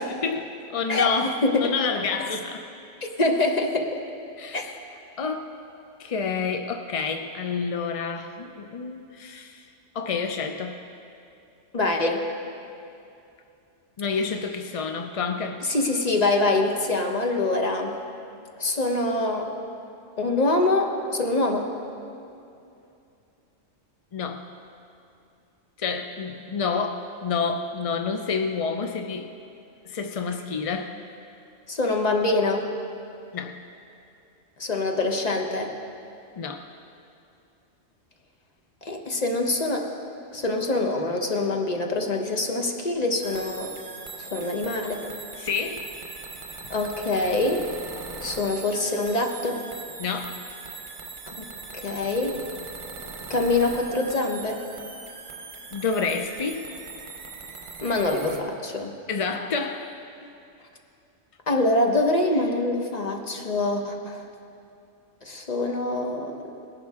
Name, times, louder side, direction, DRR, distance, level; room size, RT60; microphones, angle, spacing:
voice 1, 0.0-2.6 4.4-4.7 5.2-5.5 6.0-9.7 9.9-10.8 14.0-15.6 24.1-24.4 25.8-29.3 29.8-31.0 33.3-33.6 36.4-36.7 45.4-45.9 50.0-50.4 55.7-56.7 59.1-60.3, left 5 dB, 55° left, 5 dB, 0.3 m, -29 dB
voice 2, 1.4-1.7 3.0-3.9 4.5-4.6 11.7-12.2 15.7-18.0 18.6-19.5 20.2-21.7 31.7-32.7 34.6-35.7 38.8-39.9 40.3-43.7 44.2-45.1 46.7-47.7 48.2-49.6 51.3-51.4 51.7-52.4 53.3-54.6 57.8-59.0 61.5-64.2 65.2-66.5, left 2 dB, 35° left, 2 dB, 1.0 m, -25 dB
sound 1, 43.2-58.4, right 4 dB, 45° right, 1.0 m, -40 dB
19.5 x 11.0 x 3.6 m, 2.7 s
omnidirectional pair, 1.3 m